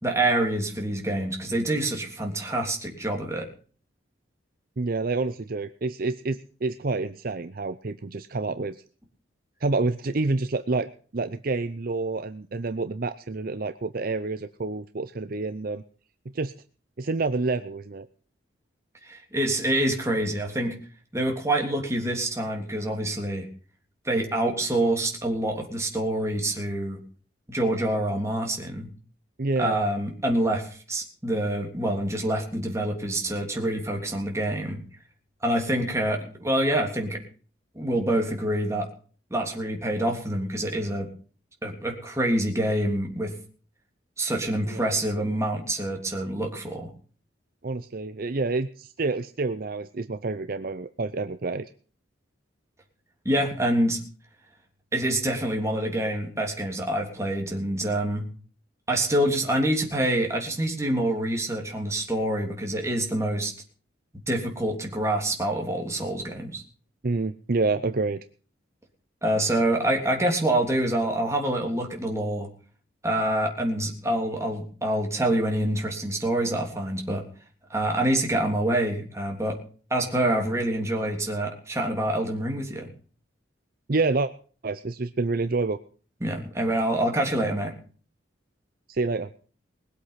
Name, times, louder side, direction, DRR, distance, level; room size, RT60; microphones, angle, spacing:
voice 1, 0.0-3.5 19.0-20.8 21.1-23.5 24.0-27.0 27.5-28.9 29.6-34.8 35.4-37.2 37.7-38.9 39.3-41.1 41.6-43.3 44.2-46.9 53.2-54.0 54.9-58.3 58.9-63.5 64.3-66.6 69.2-72.5 73.0-77.2 77.7-79.6 79.9-82.9 86.2-87.7, right 1 dB, 15° right, 1 dB, 3.2 m, -26 dB
voice 2, 4.8-8.8 9.6-15.8 16.3-16.5 17.0-18.1 29.4-29.8 44.7-44.8 47.6-51.7 67.0-68.2 83.9-84.3 84.6-85.8 88.9-89.3, right 3 dB, 50° right, 11 dB, 0.6 m, -28 dB
20.5 x 8.3 x 5.7 m, 0.41 s
head